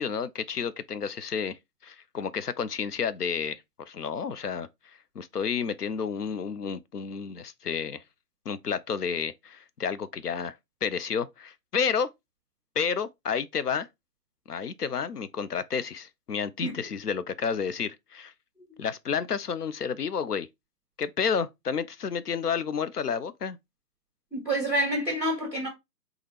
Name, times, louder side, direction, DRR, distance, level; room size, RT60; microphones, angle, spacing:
voice 1, 0.0-8.0 8.5-10.5 10.8-12.1 12.8-13.9 14.5-18.3 18.8-20.5 21.0-23.6, left 6 dB, 70° left, 0.6 m, -31 dB
voice 2, 24.3-25.7, right 1 dB, 5° left, 1.3 m, -27 dB
4.2 x 2.4 x 3.3 m
figure-of-eight pair, 140°, 49 cm